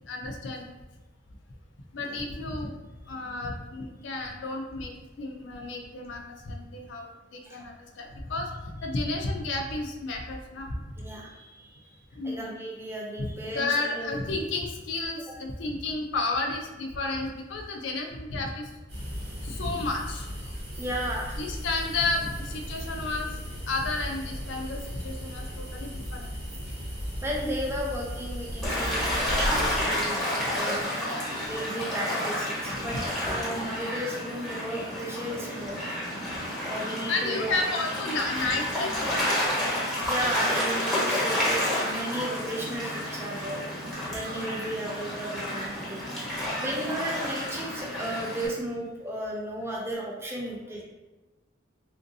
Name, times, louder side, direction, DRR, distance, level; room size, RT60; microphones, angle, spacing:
voice 1, 0.1-0.7 1.9-2.8 3.1-10.7 12.2-12.5 13.2-13.3 13.5-18.7 19.4-20.3 21.4-23.3 23.7-26.3 26.7-26.9 32.7-32.8 37.1-39.5 44.0-44.2 46.3-46.6, left 3 dB, 70° left, 2 dB, 0.4 m, -32 dB
voice 2, 11.0-11.9 12.2-14.2 20.8-21.4 27.2-30.9 31.4-35.8 36.6-37.5 40.1-46.0 46.5-50.8, right 1 dB, 15° right, -3 dB, 0.5 m, -34 dB
sound 1, 18.9-29.8, equal, 90° right, 1.4 m, -36 dB
Gull seagull / Waves surf, 28.6-48.5, left 1 dB, ahead, 1.1 m, -30 dB
3.5 x 2.6 x 2.6 m, 1.1 s
head